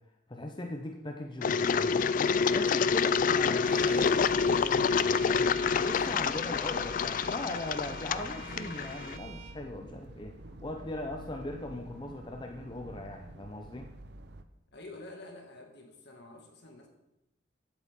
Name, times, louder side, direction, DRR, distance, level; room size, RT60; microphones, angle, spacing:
voice 1, 0.3-2.1 2.5-5.5 5.8-10.3 10.6-13.9, left 1 dB, 25° left, 3 dB, 0.7 m, -39 dB
Engine, 1.4-9.2, left 5 dB, 45° left, 0.3 m, -27 dB
Bowed string instrument, 3.6-9.6, right 6 dB, 35° right, 0.9 m, -47 dB
sound 1, 3.7-14.4, right 2 dB, 60° right, 0.7 m, -48 dB
voice 2, 14.7-16.9, left 2 dB, 60° left, 2 dB, 2.1 m, -48 dB
15.5 x 8.7 x 3.7 m, 0.89 s
head